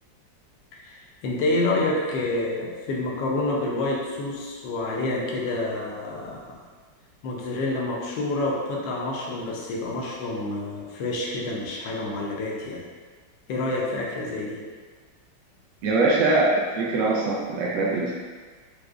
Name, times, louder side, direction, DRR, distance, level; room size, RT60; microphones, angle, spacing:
voice 1, 0.7-6.6 7.2-12.8 13.5-14.6, left 2 dB, 75° left, -2 dB, 1.2 m, -28 dB
voice 2, 15.8-18.1, right 2 dB, 75° right, -4 dB, 1.2 m, -22 dB
4.8 x 2.0 x 2.3 m, 1.5 s
omnidirectional pair, 2.1 m